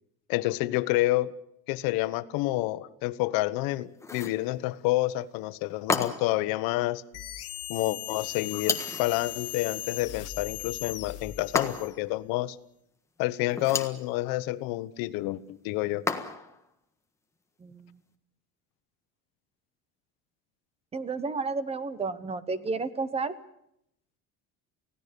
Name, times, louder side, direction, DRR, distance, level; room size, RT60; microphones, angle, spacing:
voice 1, 0.3-1.3 1.7-7.0 7.7-12.6 13.2-16.1, left 18 dB, 80° left, 1.2 m, -29 dB
sound 1, 4.0-4.4 5.9-6.4 8.6-9.1 11.6-12.1 13.5-14.0 16.1-16.6, left 3 dB, 10° left, 1.5 m, -31 dB
sound 2, 7.1-12.0, left 13 dB, 45° left, 1.5 m, -38 dB
voice 2, 17.6-18.0 20.9-23.3, right 4 dB, 20° right, 1.0 m, -32 dB
30.0 x 17.0 x 6.9 m
cardioid pair, 175°, 34 cm